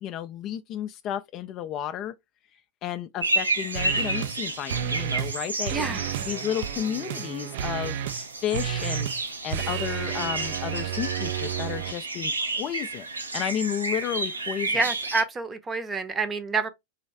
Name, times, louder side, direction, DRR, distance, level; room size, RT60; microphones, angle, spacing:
voice 1, 0.0-2.1 2.8-6.0 6.3-13.1 13.3-14.8, left 10 dB, 35° left, 0.3 m, -32 dB
sound 1, 3.2-15.2, right 2 dB, 80° right, 0.7 m, -31 dB
sound 2, 3.7-4.4 4.7-5.4 5.6-11.9, right 11 dB, 50° right, 0.3 m, -32 dB
voice 2, 5.7-6.1 14.7-16.7, right 4 dB, 20° right, 0.7 m, -28 dB
4.1 x 3.1 x 3.2 m
figure-of-eight pair, 90°, 0 cm